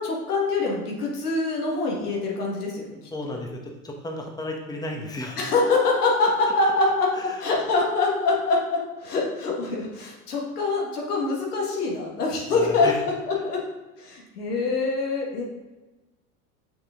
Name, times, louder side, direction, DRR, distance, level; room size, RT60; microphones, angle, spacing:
voice 1, 0.0-3.0 3.2-3.4 5.4-13.6 14.0-15.5, left 3 dB, 85° left, -2 dB, 1.9 m, -24 dB
voice 2, 3.1-3.5 3.8-5.4 7.1-7.4 12.5-13.0, left 1 dB, 10° left, 1 dB, 1.2 m, -33 dB
6.3 x 6.1 x 3.7 m, 1.1 s
hypercardioid pair, 85°, 45 cm